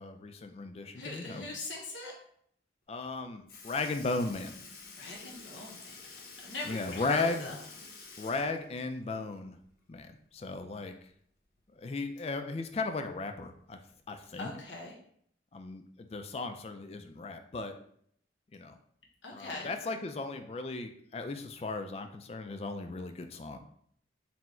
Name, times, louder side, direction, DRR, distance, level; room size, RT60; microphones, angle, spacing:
voice 1, 0.0-1.5 2.9-4.6 6.6-7.5 8.2-9.6 9.9-10.9 11.8-13.8 14.1-14.5 15.5-17.7 18.5-18.8 19.3-23.6, left 3 dB, 35° left, 7 dB, 0.3 m, -36 dB
voice 2, 1.0-2.1 5.0-6.0 6.4-7.5 14.4-14.9 19.2-19.7, left 2 dB, 80° left, -2 dB, 0.9 m, -41 dB
Sink (filling or washing) / Liquid, 3.5-9.6 9.9-10.0 11.6-11.7 12.6-12.7 13.5-13.7 14.6-14.7, left 4 dB, 50° left, 0.7 m, -50 dB
4.3 x 2.1 x 4.3 m, 0.65 s
head